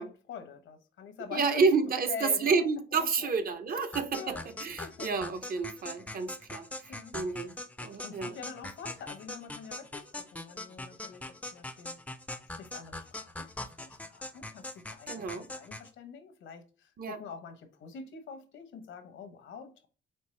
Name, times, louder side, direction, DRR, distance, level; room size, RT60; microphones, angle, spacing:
voice 1, 0.0-1.6 2.1-2.5 2.9-3.3 4.1-4.5 4.8-5.1 6.9-7.2 8.0-12.0 12.6-13.5 13.8-19.9, left 6 dB, 75° left, 0.8 m, -45 dB
voice 2, 1.3-6.7 7.1-8.3 15.1-15.5 17.0-17.2, right 4 dB, 45° right, 0.7 m, -30 dB
sound 1, 3.9-15.9, left 2 dB, 5° left, 0.4 m, -42 dB
4.4 x 3.4 x 3.1 m
cardioid pair, 90°, 20 cm